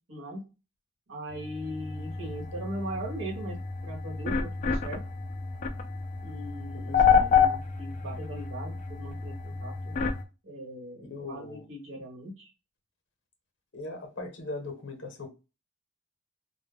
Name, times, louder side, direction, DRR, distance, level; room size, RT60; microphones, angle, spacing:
voice 1, 0.1-0.4 1.1-5.0 6.2-9.9 10.4-12.5, right 1 dB, 65° right, 1.0 m, -40 dB
sound 1, 1.3-10.2, left 6 dB, 35° left, 0.3 m, -29 dB
voice 2, 6.7-7.3 11.1-11.6 13.7-15.3, left 2 dB, 55° left, 0.8 m, -39 dB
2.2 x 2.1 x 3.3 m
head